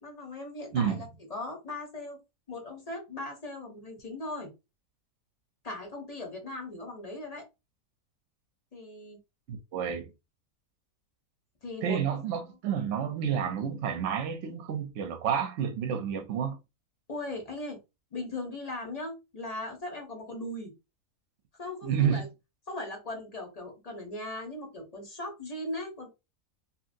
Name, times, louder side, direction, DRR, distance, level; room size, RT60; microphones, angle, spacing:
voice 1, 0.0-2.2 2.5-4.5 5.6-7.5 8.7-9.2 11.6-12.0 17.1-17.8 18.1-20.7 21.6-22.3 22.7-26.1, left 2 dB, 35° left, 0.7 m, -38 dB
voice 2, 0.7-1.1 9.5-10.1 11.8-16.6 21.8-22.3, right 8 dB, 65° right, 0.8 m, -30 dB
2.8 x 2.7 x 2.6 m
omnidirectional pair, 1.6 m